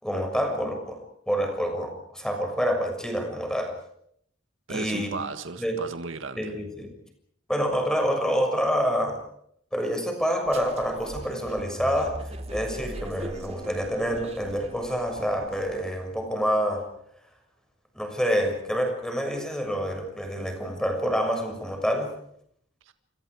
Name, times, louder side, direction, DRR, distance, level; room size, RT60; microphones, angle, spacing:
voice 1, 0.0-1.0 1.3-3.7 4.7-5.1 5.6-5.8 6.4-7.0 7.5-9.2 9.7-16.9 17.9-22.1, equal, 5° left, 4 dB, 6.4 m, -27 dB
voice 2, 4.7-6.6 22.9-23.0, right 3 dB, 90° right, 9 dB, 1.8 m, -35 dB
sound 1, 10.5-16.0, right 1 dB, 35° right, 2.5 m, -40 dB
30.0 x 25.5 x 4.9 m, 0.68 s
head